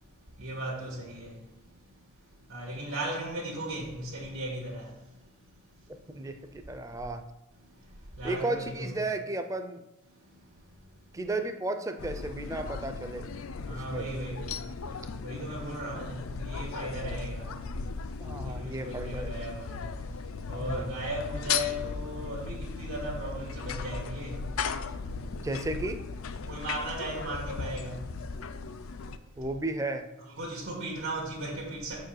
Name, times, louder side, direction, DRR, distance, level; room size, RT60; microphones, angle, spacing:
voice 1, 0.4-1.3 2.5-4.9 8.2-9.1 13.7-14.6 15.2-17.5 18.4-19.9 20.5-24.4 26.5-28.0 30.4-32.1, right 1 dB, 85° right, 1.6 m, -36 dB
voice 2, 6.1-7.2 8.2-9.8 11.1-13.3 13.7-14.1 18.2-19.3 20.6-21.0 25.4-26.0 29.4-30.1, right 2 dB, 15° right, 0.5 m, -34 dB
sound 1, 12.0-29.2, left 5 dB, 80° left, 0.5 m, -37 dB
6.6 x 4.8 x 6.4 m
head